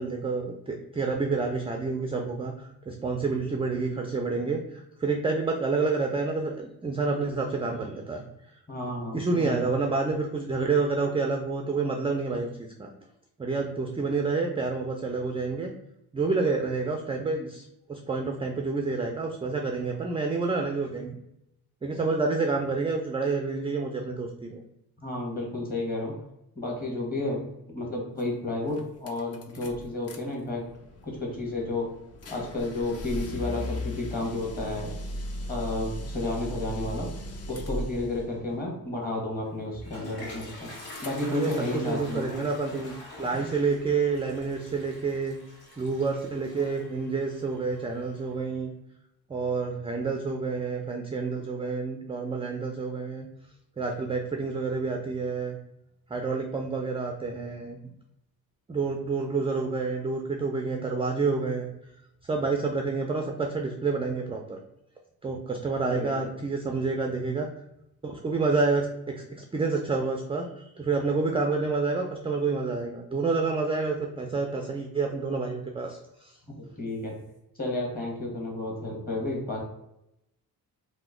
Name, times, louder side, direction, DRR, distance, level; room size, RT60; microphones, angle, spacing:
voice 1, 0.0-8.2 9.1-12.9 13.4-15.7 16.1-21.2 21.8-24.6 41.3-45.4 45.8-48.7 49.3-53.3 53.8-55.6 56.1-57.9 58.7-61.7 62.3-64.6 65.2-67.5 68.0-69.3 69.5-76.3, right 4 dB, 15° right, 2 dB, 0.3 m, -28 dB
voice 2, 8.7-9.7 25.0-26.1 26.5-30.6 31.0-31.9 32.3-34.9 35.5-37.1 37.5-40.7 41.0-42.3 43.3-43.5 65.8-66.1 76.4-76.5 76.8-77.1 77.5-79.6, left 2 dB, 25° left, -2 dB, 1.3 m, -32 dB
sound 1, 28.2-28.3 28.6-30.2 30.5-38.3 39.8-40.5 40.7-41.7, equal, 40° left, 0.6 m, -38 dB
Toilet flush, 39.5-48.3, left 2 dB, 70° left, 1.2 m, -45 dB
2.9 x 2.1 x 3.6 m, 0.83 s
cardioid pair, 80°, 39 cm